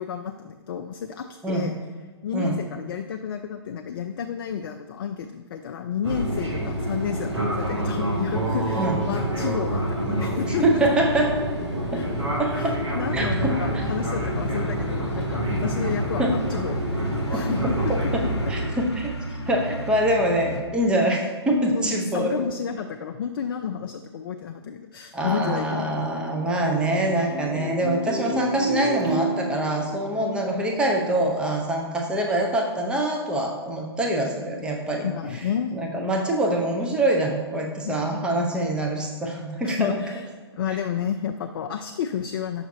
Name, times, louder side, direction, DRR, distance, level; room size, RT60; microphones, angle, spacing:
voice 1, 0.0-1.8 2.2-10.6 11.9-12.0 12.5-16.9 17.3-17.9 21.7-25.9 35.0-35.7 37.8-38.3 39.6-40.3 40.6-42.7, left 8 dB, 55° left, 6 dB, 0.4 m, -31 dB
Fixed-wing aircraft airplane, 6.0-18.7, right 1 dB, 90° right, 1.3 m, -27 dB
voice 2, 10.6-11.3 11.9-12.1 12.4-12.8 13.1-13.8 16.2-16.3 17.3-17.4 18.1-19.1 19.5-22.4 25.1-35.1 35.3-35.4 35.7-40.0, right 1 dB, 5° right, 0 dB, 0.7 m, -24 dB
sound 1, 13.0-20.6, right 1 dB, 80° left, 0.9 m, -33 dB
sound 2, 25.8-31.2, right 2 dB, 35° right, 1.1 m, -31 dB
5.9 x 5.8 x 2.7 m, 1.5 s
figure-of-eight pair, 120°, 14 cm